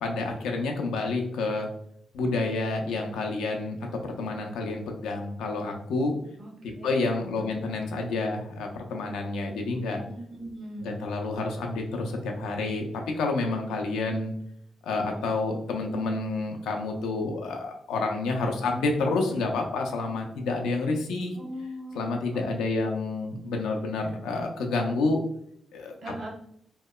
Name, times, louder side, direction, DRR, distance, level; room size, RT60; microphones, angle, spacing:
voice 1, 0.0-1.7 2.1-3.8 4.0-6.2 6.6-10.0 10.8-14.3 14.8-21.3 21.9-25.2 25.7-26.0, left 3 dB, 90° left, 2 dB, 0.4 m, -29 dB
voice 2, 6.4-6.9 7.4-7.6 10.0-11.0 21.3-22.4 26.0-26.3, equal, 65° right, -1 dB, 0.9 m, -40 dB
2.8 x 2.0 x 2.2 m, 0.71 s
supercardioid pair, 60°, 0 cm